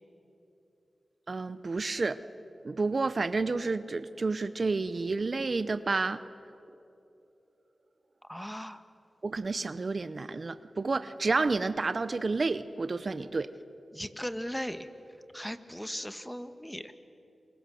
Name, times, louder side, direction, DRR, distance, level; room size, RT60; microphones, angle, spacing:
voice 1, 1.3-2.2 2.6-6.2 9.2-13.5, right 3 dB, 55° right, 14 dB, 0.7 m, -30 dB
voice 2, 8.3-8.8 13.9-14.9 15.3-16.9, equal, 5° left, 11 dB, 1.5 m, -37 dB
29.5 x 22.0 x 7.8 m, 3.0 s
cardioid pair, 45°, 0 cm